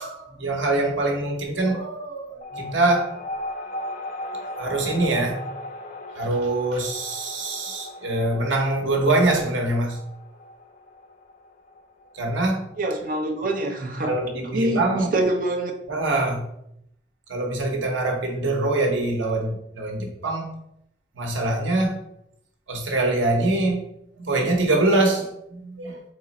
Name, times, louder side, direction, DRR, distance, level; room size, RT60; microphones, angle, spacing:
voice 1, 0.0-3.1 4.6-5.4 6.2-10.0 12.1-12.6 14.0-15.1 15.9-16.5 17.3-20.6 21.1-22.0 22.7-23.8 24.2-26.0, right 2 dB, 80° right, 2 dB, 0.9 m, -24 dB
sound 1, 2.4-13.3, left 2 dB, 45° left, 0.4 m, -37 dB
voice 2, 12.8-14.1 14.5-15.7, right 1 dB, 45° right, 2 dB, 0.6 m, -25 dB
3.7 x 3.0 x 4.1 m, 0.77 s
head